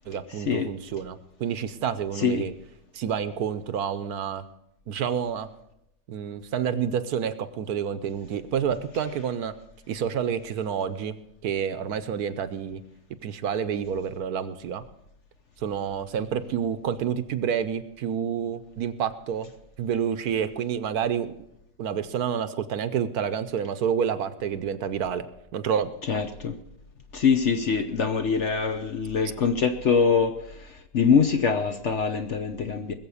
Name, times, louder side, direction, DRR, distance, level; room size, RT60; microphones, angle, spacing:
voice 1, 0.1-2.5 2.9-4.4 4.9-5.5 6.1-9.5 9.9-11.2 11.4-12.8 13.2-14.8 15.6-19.5 19.8-21.3 21.8-25.3 25.5-25.9, right 8 dB, 65° right, 1.2 m, -28 dB
voice 2, 2.2-2.5 26.1-26.6 27.1-32.9, left 5 dB, 50° left, 0.9 m, -24 dB
20.0 x 7.5 x 7.0 m
omnidirectional pair, 1.8 m